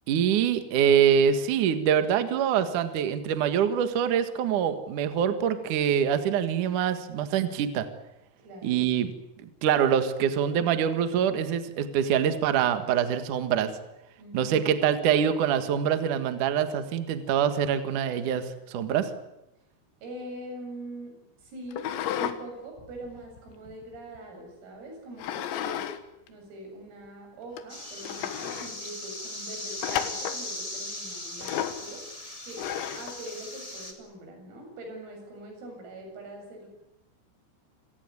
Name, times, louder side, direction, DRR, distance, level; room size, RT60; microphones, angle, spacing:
voice 1, 0.1-7.9 8.6-9.1 9.6-13.7 14.3-19.1, right 8 dB, 60° right, 9 dB, 2.3 m, -25 dB
voice 2, 8.4-8.9 14.2-14.6 20.0-25.8 26.3-32.0 32.4-32.6 33.0-36.7, right 1 dB, 90° right, 3 dB, 10.0 m, -43 dB
sound 1, 21.7-22.4 22.8-24.2 25.2-26.0 26.3-26.4 27.1-27.2 27.6-27.7 28.0-28.7 29.8-30.4 31.4-31.8 32.6-33.2, left 10 dB, 70° left, 3.5 m, -32 dB
sound 2, 27.7-33.9, left 1 dB, 10° left, 1.6 m, -39 dB
28.0 x 17.0 x 9.7 m, 0.90 s
omnidirectional pair, 5.9 m